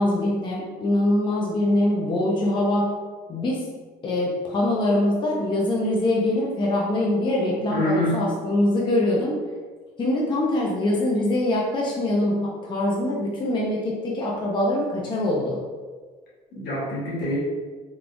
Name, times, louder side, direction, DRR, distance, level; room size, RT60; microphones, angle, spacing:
voice 1, 0.0-2.9 3.3-3.7 4.0-9.4 10.0-15.6, left 1 dB, 30° left, -4 dB, 0.5 m, -23 dB
voice 2, 7.7-8.2 16.5-17.4, left 1 dB, 75° left, -6 dB, 1.3 m, -25 dB
3.5 x 2.3 x 2.5 m, 1.4 s
cardioid pair, 110°, 17 cm